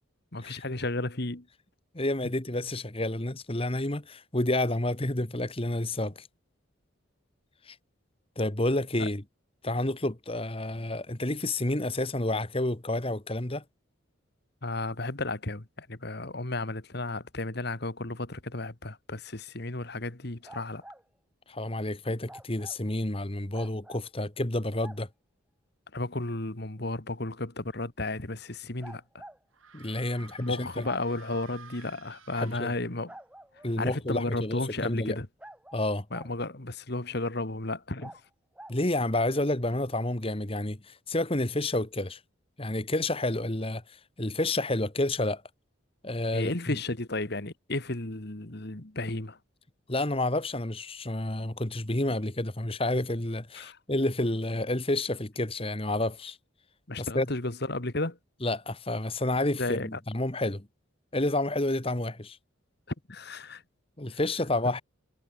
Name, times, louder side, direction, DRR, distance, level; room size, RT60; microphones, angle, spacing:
voice 1, 0.3-1.5 9.0-9.1 14.6-20.8 25.9-29.2 30.4-33.1 33.8-35.3 36.1-38.2 46.3-49.4 53.6-53.8 56.9-58.2 59.6-60.0 63.1-63.6, left 2 dB, 55° left, 1.9 m, -33 dB
voice 2, 1.9-6.3 7.6-7.7 8.4-9.2 9.6-13.6 21.5-25.1 29.7-30.8 32.4-32.7 33.6-35.2 35.7-36.0 38.7-42.2 42.6-45.4 46.0-46.8 49.9-56.4 57.0-57.3 58.4-60.7 61.1-62.4 64.0-64.8, left 1 dB, 30° left, 1.6 m, -29 dB
sound 1, 20.4-21.0 22.3-22.8 23.5-24.0 24.8-25.0 26.8-26.9 28.8-29.4 30.8-31.0 33.1-33.7 35.4-36.3 38.0-38.2 38.5-38.8, right 1 dB, 5° right, 1.9 m, -47 dB
sound 2, 29.5-33.2, right 5 dB, 90° right, 6.0 m, -52 dB
head